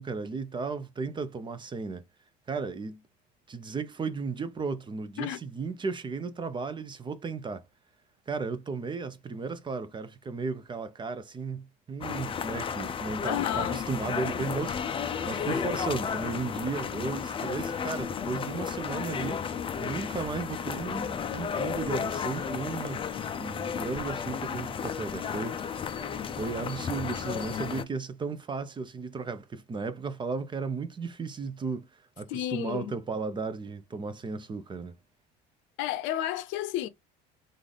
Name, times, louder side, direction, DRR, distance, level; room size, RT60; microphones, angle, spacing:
voice 1, 0.0-2.0 2.5-3.0 3.5-7.6 8.3-19.4 19.8-23.1 23.4-25.6 26.0-26.1 26.4-35.0, right 4 dB, 25° right, 0.5 m, -35 dB
sound 1, 12.0-27.8, left 7 dB, 25° left, 0.4 m, -33 dB
voice 2, 13.2-13.8 32.3-32.9 35.8-36.9, left 12 dB, 70° left, 0.6 m, -31 dB
3.3 x 2.5 x 3.9 m
supercardioid pair, 100°, 20 cm